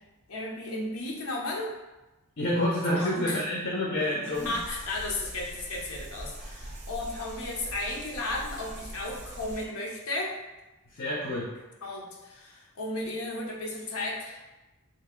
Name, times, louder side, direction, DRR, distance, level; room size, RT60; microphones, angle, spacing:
voice 1, 0.3-1.7 2.9-3.4 4.3-10.4 11.8-14.5, left 2 dB, 85° left, -2 dB, 0.7 m, -34 dB
voice 2, 2.4-4.6 11.0-11.5, left 1 dB, 55° left, -5 dB, 0.6 m, -28 dB
sound 1, 4.3-9.7, right 1 dB, 30° right, 0.4 m, -42 dB
2.9 x 2.5 x 3.6 m, 1.1 s
head